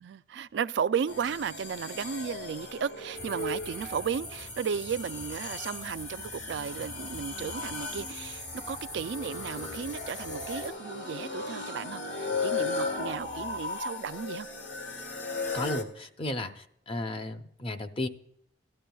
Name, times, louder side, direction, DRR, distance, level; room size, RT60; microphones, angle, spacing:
voice 1, 0.0-14.5, right 7 dB, 75° right, 0.3 m, -34 dB
sound 1, 1.1-15.8, left 3 dB, 80° left, 1.5 m, -37 dB
sound 2, 3.1-10.7, left 1 dB, 65° left, 4.3 m, -43 dB
voice 2, 15.5-18.1, left 1 dB, 30° left, 0.7 m, -34 dB
16.5 x 12.0 x 2.3 m
head